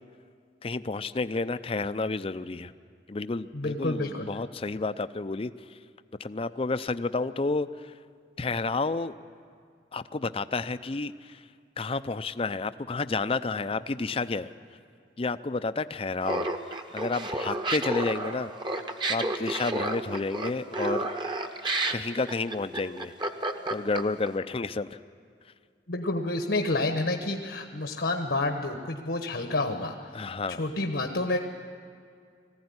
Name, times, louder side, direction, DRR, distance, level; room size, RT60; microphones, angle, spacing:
voice 1, 0.6-2.7 3.1-5.5 6.2-7.7 8.4-9.2 9.9-11.4 11.8-14.5 15.2-16.5 16.9-18.5 19.1-21.1 21.9-23.1 23.7-24.9 30.1-30.6, left 3 dB, 30° left, 13 dB, 0.5 m, -30 dB
voice 2, 3.5-4.3 25.9-30.0 30.5-31.4, left 2 dB, 75° left, 4 dB, 1.2 m, -29 dB
Laughter, 16.2-24.3, right 2 dB, 25° right, 1.1 m, -31 dB
20.5 x 15.5 x 9.6 m, 2.2 s
head